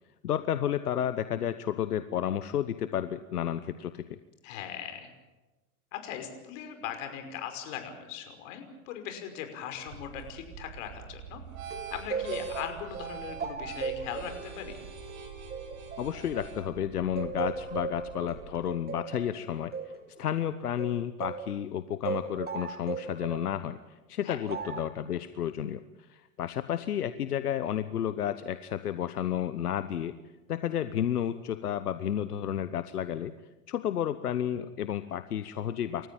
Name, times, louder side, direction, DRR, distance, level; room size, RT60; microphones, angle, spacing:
voice 1, 0.2-4.2 16.0-19.9 20.2-30.1 30.5-33.3 33.7-36.1, left 10 dB, 90° left, 12 dB, 1.1 m, -32 dB
voice 2, 4.4-5.1 5.9-11.4 11.9-14.8 24.2-24.4, left 9 dB, 55° left, 6 dB, 5.5 m, -39 dB
sound 1, 9.9-18.7, right 7 dB, 65° right, 7.7 m, -45 dB
sound 2, 11.7-16.7 17.2-21.5 22.0-23.5 24.5-24.9, right 6 dB, 20° right, 2.7 m, -37 dB
29.5 x 14.5 x 9.0 m, 1.2 s
hypercardioid pair, 110°, 45 cm